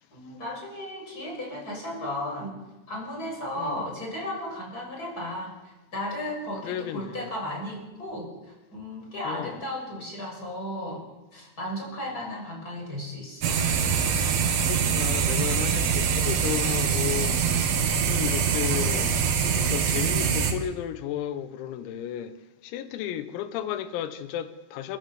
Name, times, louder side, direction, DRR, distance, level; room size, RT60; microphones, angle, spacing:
voice 1, 0.1-13.6, left 1 dB, 15° left, 6.7 m, -35 dB
voice 2, 6.6-7.3 9.3-9.6 14.7-17.4 18.1-19.1 19.6-22.4 22.6-25.0, left 11 dB, 90° left, 3.9 m, -33 dB
sound 1, 13.4-20.5, right 6 dB, 90° right, 5.2 m, -24 dB
29.0 x 13.0 x 7.9 m
omnidirectional pair, 6.0 m